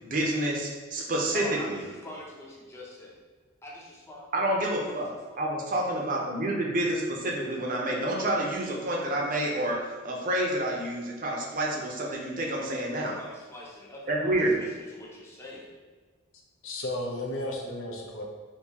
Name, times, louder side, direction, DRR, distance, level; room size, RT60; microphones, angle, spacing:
voice 1, 0.0-1.8 4.3-5.1 5.4-13.2 14.1-14.5, right 1 dB, 45° right, -1 dB, 0.6 m, -28 dB
voice 2, 1.3-3.2 3.6-4.2 4.9-5.0 5.3-5.4 13.0-15.7, left 1 dB, 15° left, -4 dB, 0.6 m, -44 dB
voice 3, 16.6-18.2, left 1 dB, 80° left, 0 dB, 0.6 m, -33 dB
3.6 x 2.6 x 2.8 m, 1.4 s
head